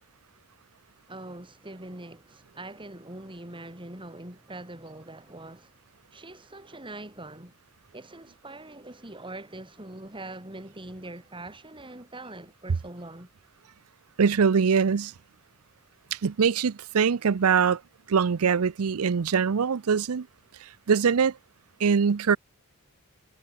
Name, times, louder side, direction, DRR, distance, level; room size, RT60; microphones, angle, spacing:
voice 1, 1.1-5.7 6.1-7.5 7.9-13.3, right 2 dB, 25° right, 4.6 m, -43 dB
voice 2, 14.2-15.1 16.1-17.8 18.1-20.3 20.6-21.4 21.8-22.4, right 6 dB, 80° right, 0.5 m, -23 dB
head